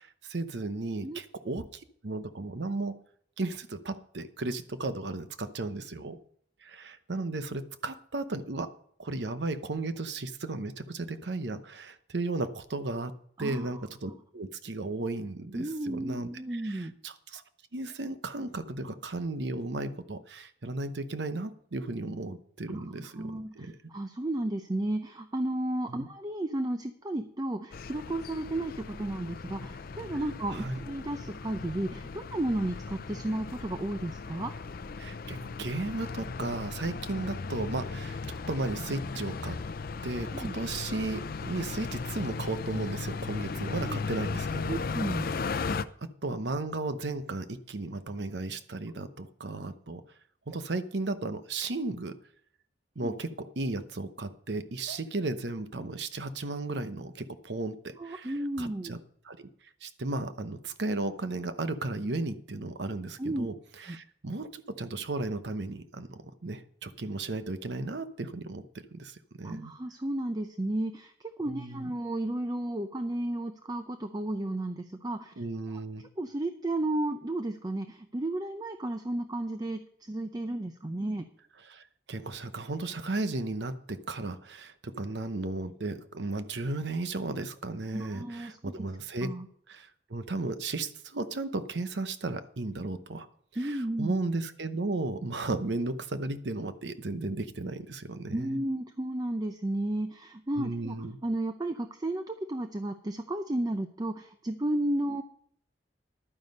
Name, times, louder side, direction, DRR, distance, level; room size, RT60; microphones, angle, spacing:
voice 1, 0.0-3.0 3.4-6.2 6.6-8.7 9.0-13.1 13.4-17.4 17.7-23.7 25.9-26.1 30.5-30.8 35.0-39.6 40.0-44.8 46.0-50.0 50.5-52.1 53.0-59.0 59.2-59.5 59.8-68.6 68.9-69.7 71.5-71.9 75.4-76.0 81.6-89.3 89.7-93.3 93.5-98.6 100.6-101.2, right 2 dB, 75° right, 11 dB, 0.9 m, -35 dB
voice 2, 13.4-13.8 15.5-16.9 22.7-34.5 40.3-40.5 43.8-44.0 44.7-45.3 53.0-53.1 58.0-58.9 63.2-63.5 63.9-64.0 69.4-71.1 71.4-75.3 75.7-75.8 76.2-81.3 87.9-88.9 89.2-89.5 93.6-94.2 98.3-101.0 101.2-105.2, right 1 dB, 20° right, 8 dB, 0.6 m, -33 dB
sound 1, 27.7-45.9, left 4 dB, 55° left, 0.5 m, -37 dB
11.5 x 9.5 x 5.3 m, 0.64 s
head